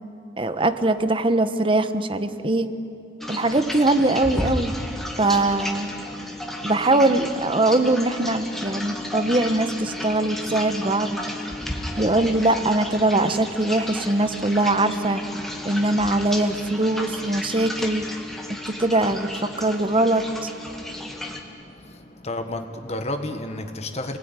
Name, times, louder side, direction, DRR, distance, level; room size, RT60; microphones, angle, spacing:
voice 1, 0.4-2.7 3.3-4.8 5.2-5.9 6.6-11.2 12.0-15.2 15.6-18.0 18.8-20.5, right 2 dB, 30° right, 10 dB, 1.1 m, -22 dB
sound 1, 3.2-21.4, left 1 dB, ahead, 2.1 m, -33 dB
voice 2, 21.3-24.2, left 1 dB, 35° left, 7 dB, 1.4 m, -32 dB
28.5 x 20.5 x 9.9 m, 2.8 s
head